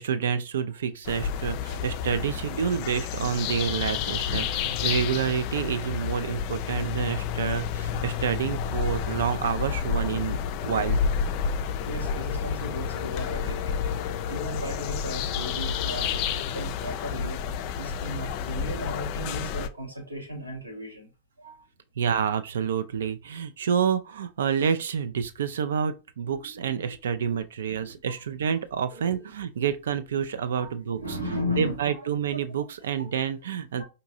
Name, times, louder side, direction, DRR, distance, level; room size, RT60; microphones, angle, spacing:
voice 1, 0.0-10.4 10.7-11.0 22.0-31.2 31.6-33.8, right 7 dB, 65° right, 0.3 m, -28 dB
sound 1, 1.0-19.7, left 7 dB, 45° left, 0.3 m, -30 dB
voice 2, 11.9-13.8 14.3-17.4 17.8-21.1 21.4-21.6 26.3-26.4 26.8-26.9 27.7-28.1 28.9-29.1 30.5-30.7 31.0-31.8 32.3-32.4 33.0-33.1 33.8-33.9, left 1 dB, 85° right, 1.0 m, -35 dB
4.5 x 2.6 x 2.6 m
figure-of-eight pair, 90°, 0 cm